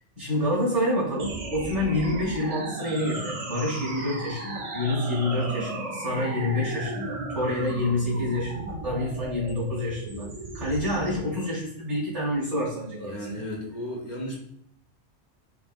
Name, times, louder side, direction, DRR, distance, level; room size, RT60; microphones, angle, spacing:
voice 1, 0.2-10.3 10.5-13.2, left 1 dB, 90° right, -7 dB, 2.0 m, -28 dB
sound 1, 1.2-11.2, right 2 dB, 45° right, 0.5 m, -35 dB
voice 2, 13.0-14.4, equal, 50° left, -1 dB, 0.7 m, -34 dB
4.7 x 2.1 x 2.4 m, 0.70 s
omnidirectional pair, 1.2 m